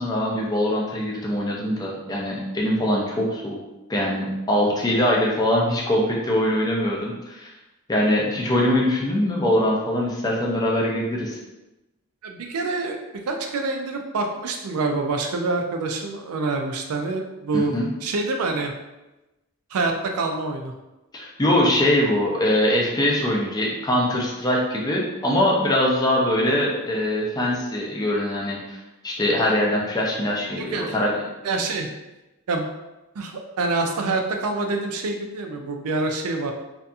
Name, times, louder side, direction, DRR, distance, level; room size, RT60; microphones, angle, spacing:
voice 1, 0.0-3.6 3.9-7.5 7.9-11.4 17.5-17.9 21.1-28.8 29.0-31.2, left 1 dB, 15° left, -2 dB, 0.4 m, -22 dB
voice 2, 12.2-13.0 13.3-17.8 18.0-18.7 19.7-20.7 30.6-31.0 31.4-31.9 32.5-32.6 33.1-36.5, right 3 dB, 85° right, 4 dB, 0.4 m, -26 dB
2.7 x 2.5 x 2.3 m, 1.0 s
head